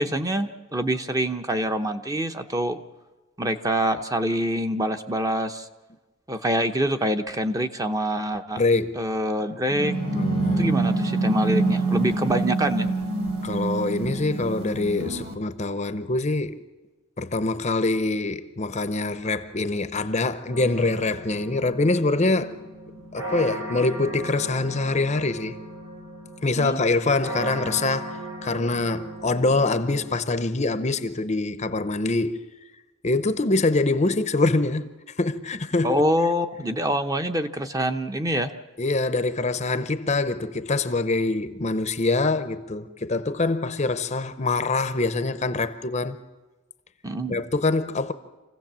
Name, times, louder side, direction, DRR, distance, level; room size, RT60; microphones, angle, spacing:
voice 1, 0.0-2.8 3.4-5.7 6.3-8.6 9.0-9.9 10.6-12.9 26.6-26.8 35.8-38.5 47.0-47.4, equal, 15° right, 0.7 m, -25 dB
voice 2, 8.6-9.0 10.1-10.7 13.4-16.6 17.2-22.6 23.1-25.6 26.4-32.4 33.0-34.9 35.2-36.0 38.8-46.2 47.3-48.1, left 3 dB, 30° left, 0.7 m, -24 dB
sound 1, 9.7-15.3, right 2 dB, 50° right, 2.4 m, -25 dB
sound 2, 20.5-30.1, right 1 dB, 90° right, 5.2 m, -37 dB
27.0 x 16.0 x 7.4 m
head